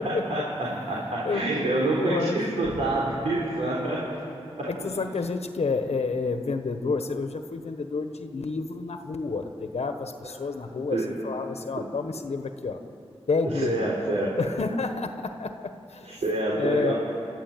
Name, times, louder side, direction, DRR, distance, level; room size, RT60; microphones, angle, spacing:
voice 1, 0.0-4.0 4.6-4.7 10.9-11.1 13.5-14.3 16.0-16.9, right 2 dB, 90° right, -5 dB, 4.1 m, -27 dB
voice 2, 1.2-2.4 4.7-12.8 13.3-13.9 14.4-16.2 16.6-16.9, left 4 dB, 75° left, 7 dB, 1.2 m, -29 dB
28.5 x 12.5 x 9.1 m, 2.6 s
wide cardioid pair, 65°, 11 cm